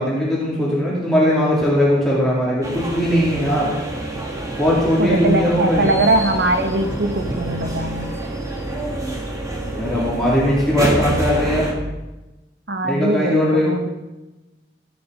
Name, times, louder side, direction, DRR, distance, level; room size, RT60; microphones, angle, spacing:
voice 1, 0.0-3.7 4.6-5.9 9.6-11.7 12.8-13.7, equal, ahead, -7 dB, 2.8 m, -19 dB
sound 1, 2.6-11.7, right 1 dB, 20° right, 1.9 m, -27 dB
voice 2, 5.0-8.1 12.7-13.9, right 2 dB, 65° right, 7 dB, 1.3 m, -21 dB
15.5 x 9.5 x 5.2 m, 1.1 s
head